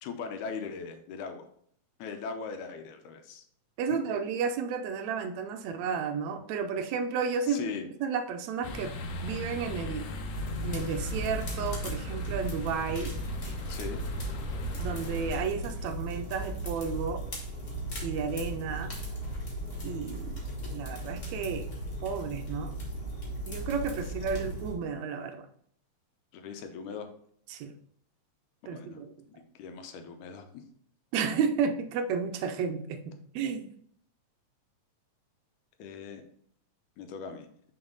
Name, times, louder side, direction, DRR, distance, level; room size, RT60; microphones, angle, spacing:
voice 1, 0.0-1.5 2.0-3.4 3.9-4.0 7.5-7.9 13.7-14.0 24.3-24.4 26.3-27.1 28.7-29.0 29.4-30.6 35.8-36.2 37.0-37.5, left 5 dB, 90° left, 6 dB, 2.2 m, -39 dB
voice 2, 3.8-8.9 9.2-10.1 10.6-13.1 14.8-17.2 18.0-18.9 19.8-20.4 20.7-21.7 22.0-22.7 23.5-25.4 27.5-27.7 28.7-29.1 31.1-33.0 33.3-33.7, right 6 dB, 75° right, 7 dB, 1.8 m, -32 dB
sound 1, 8.6-15.4, left 2 dB, 70° left, 1.7 m, -38 dB
sound 2, 10.3-24.7, right 1 dB, 40° left, 1.5 m, -37 dB
6.1 x 4.3 x 3.8 m, 0.62 s
omnidirectional pair, 3.4 m